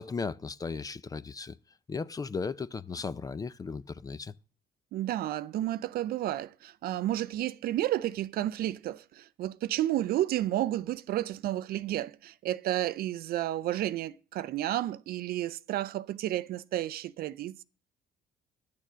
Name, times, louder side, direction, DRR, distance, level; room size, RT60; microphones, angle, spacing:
voice 1, 0.0-1.6 1.9-4.3, left 4 dB, 20° left, 0.4 m, -36 dB
voice 2, 4.9-17.6, right 13 dB, 65° right, 0.5 m, -31 dB
10.5 x 6.7 x 6.1 m
cardioid pair, 110°, 17 cm